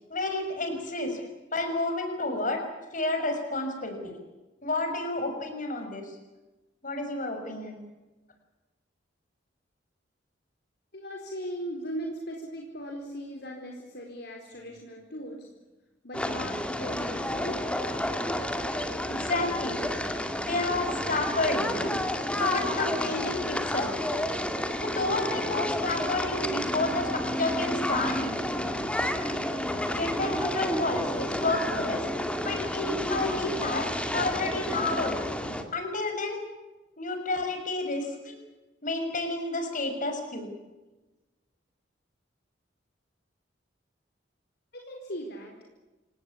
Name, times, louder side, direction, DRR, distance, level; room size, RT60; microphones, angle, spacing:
voice 1, 0.1-1.2 1.5-2.6 2.9-4.1 4.6-6.1 6.8-7.8 19.1-19.8 20.5-21.9 22.3-24.0 24.8-28.3 29.9-32.0 32.4-35.2 35.7-36.4 37.0-38.4 38.8-40.5, left 2 dB, 45° left, 5 dB, 6.1 m, -30 dB
voice 2, 10.9-15.5 16.0-17.9 44.7-45.5, equal, 60° left, 1 dB, 4.4 m, -38 dB
sound 1, 16.1-35.6, left 1 dB, 5° left, 2.4 m, -30 dB
28.0 x 18.5 x 8.6 m, 1.1 s
head